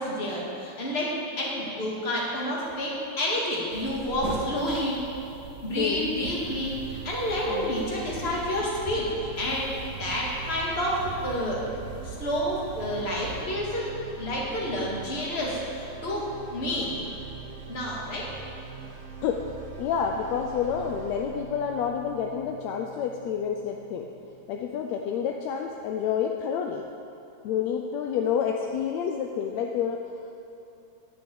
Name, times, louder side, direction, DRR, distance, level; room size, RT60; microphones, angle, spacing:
voice 1, 0.0-5.0 5.6-11.6 12.0-13.9 14.2-16.9 17.7-18.3, left 1 dB, 25° left, -4 dB, 2.0 m, -29 dB
sound 1, 3.7-13.4, right 4 dB, 80° right, 0.9 m, -41 dB
Sound Track Pad, 6.4-24.4, right 6 dB, 65° right, 1.4 m, -42 dB
voice 2, 19.8-24.1 24.5-26.8 27.4-30.0, left 7 dB, 75° left, 2 dB, 1.7 m, -28 dB
12.0 x 6.1 x 8.5 m, 2.8 s
omnidirectional pair, 3.4 m